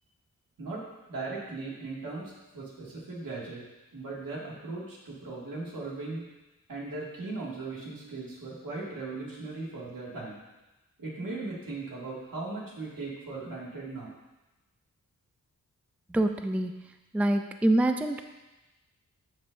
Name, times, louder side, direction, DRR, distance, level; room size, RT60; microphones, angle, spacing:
voice 1, 1.1-3.6 3.9-6.2 6.7-10.4 11.0-14.1, right 3 dB, 85° right, -5 dB, 2.1 m, -38 dB
voice 2, 16.1-16.7 17.1-18.2, right 1 dB, 5° right, 7 dB, 0.3 m, -25 dB
13.0 x 5.2 x 2.6 m, 1.1 s
wide cardioid pair, 105°, 33 cm